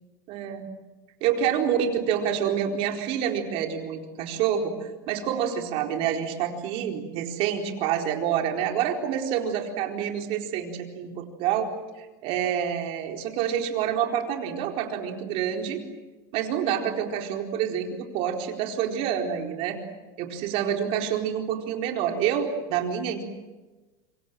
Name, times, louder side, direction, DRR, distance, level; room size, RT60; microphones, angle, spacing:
voice 1, 0.3-0.7 1.2-11.7 12.0-15.8 16.3-19.8 20.2-23.2, right 9 dB, 60° right, 3 dB, 4.3 m, -27 dB
26.0 x 24.5 x 7.6 m, 1.2 s
supercardioid pair, 115°, 11 cm